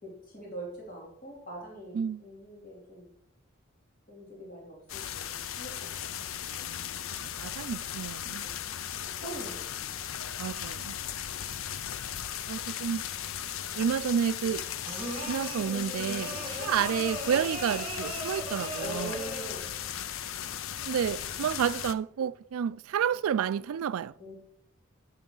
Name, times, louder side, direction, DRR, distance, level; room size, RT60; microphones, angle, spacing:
voice 1, 0.0-3.1 4.1-6.2 8.4-8.7 9.2-9.6 14.4-14.5 16.3-16.4 18.8-19.6 24.2-24.3, right 2 dB, 40° left, 3.0 m, -43 dB
sound 1, 4.9-21.9, left 10 dB, 75° left, 0.5 m, -37 dB
voice 2, 7.2-8.5 10.4-11.0 12.5-13.0 13.7-14.7 15.3-19.2 20.9-24.1, right 8 dB, 90° right, 0.3 m, -30 dB
sound 2, 14.8-19.7, right 1 dB, 25° right, 1.7 m, -38 dB
12.5 x 6.9 x 3.8 m
head